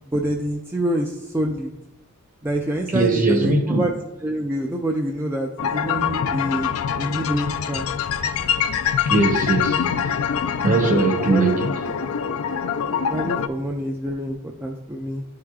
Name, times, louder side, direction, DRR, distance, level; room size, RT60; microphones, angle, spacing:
voice 1, 0.1-1.8 2.4-3.9 4.2-6.7 7.0-7.9 11.2-11.6 13.1-15.2, right 1 dB, 10° right, 0.4 m, -26 dB
voice 2, 2.9-3.9 9.1-11.7, right 3 dB, 40° right, 0.8 m, -21 dB
sound 1, 5.6-13.5, left 7 dB, 85° left, 0.4 m, -24 dB
11.5 x 4.9 x 2.3 m
head